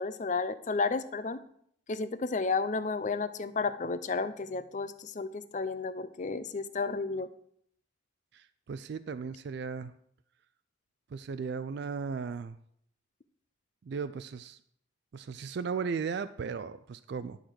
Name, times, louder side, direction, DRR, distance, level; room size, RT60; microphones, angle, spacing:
voice 1, 0.0-1.4 1.9-7.3, left 4 dB, 35° left, 12 dB, 0.5 m, -32 dB
voice 2, 8.3-9.9 11.1-12.6 13.9-14.6 15.1-17.4, right 5 dB, 55° right, 12 dB, 0.3 m, -36 dB
11.5 x 4.0 x 6.2 m, 0.68 s
head